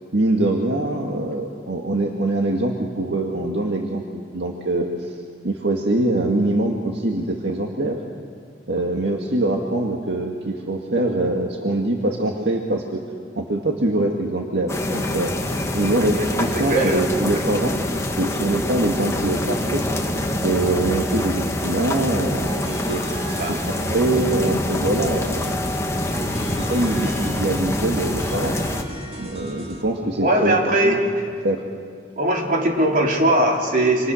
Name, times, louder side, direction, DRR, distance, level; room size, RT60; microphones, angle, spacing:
voice 1, 0.1-5.1 5.4-8.0 8.7-13.0 13.4-15.3 15.7-19.9 20.4-23.0 23.7-25.6 26.7-28.6 29.2-30.6 30.8-31.0 31.4-31.6, right 1 dB, 75° right, 1 dB, 2.0 m, -23 dB
sound 1, 14.7-28.8, left 1 dB, 15° left, 1.9 m, -25 dB
voice 2, 16.4-17.0 23.4-23.9 30.2-31.2 32.2-34.1, right 1 dB, 50° right, -1 dB, 4.3 m, -20 dB
sound 2, 22.4-29.8, right 2 dB, 35° right, 3.2 m, -38 dB
29.0 x 27.5 x 6.5 m, 2.1 s
head